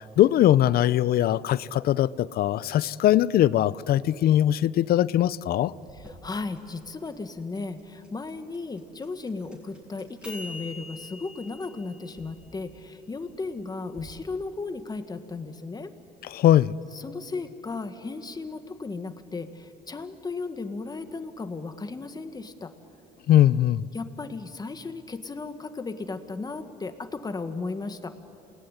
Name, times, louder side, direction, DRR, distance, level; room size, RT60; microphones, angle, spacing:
voice 1, 0.0-5.7 16.3-16.8 23.3-23.8, left 12 dB, 65° left, 19 dB, 0.7 m, -21 dB
voice 2, 5.9-15.9 16.9-22.7 23.9-28.1, left 3 dB, 25° left, 9 dB, 1.7 m, -35 dB
sound 1, 5.9-14.0, left 1 dB, 5° right, 7.3 m, -46 dB
28.5 x 19.0 x 10.0 m, 2.9 s
cardioid pair, 110°, 17 cm